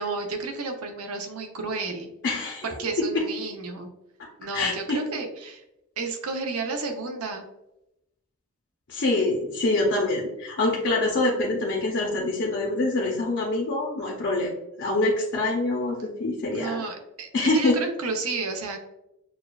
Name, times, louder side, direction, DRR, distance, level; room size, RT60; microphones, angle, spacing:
voice 1, 0.0-2.1 2.6-3.9 4.4-5.6 6.0-7.5 16.5-18.8, right 3 dB, 75° right, 4 dB, 0.7 m, -31 dB
voice 2, 2.2-2.6 3.1-3.2 4.2-4.3 4.5-5.0 8.9-16.8 17.3-17.7, left 2 dB, 50° left, -2 dB, 0.6 m, -25 dB
6.3 x 2.3 x 2.3 m, 0.88 s
head